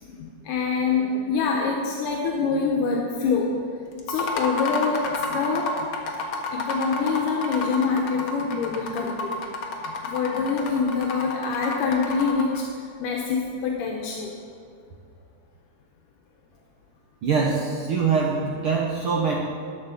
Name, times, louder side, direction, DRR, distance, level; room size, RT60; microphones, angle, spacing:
voice 1, 0.0-3.6 4.1-5.9 6.5-9.5 9.8-14.4, left 5 dB, 80° left, 0 dB, 2.4 m, -25 dB
sound 1, 4.0-12.6, left 3 dB, 65° left, 1.3 m, -30 dB
voice 2, 17.2-19.4, right 5 dB, 85° right, -2 dB, 1.2 m, -23 dB
12.0 x 5.5 x 7.1 m, 2.2 s
omnidirectional pair, 3.7 m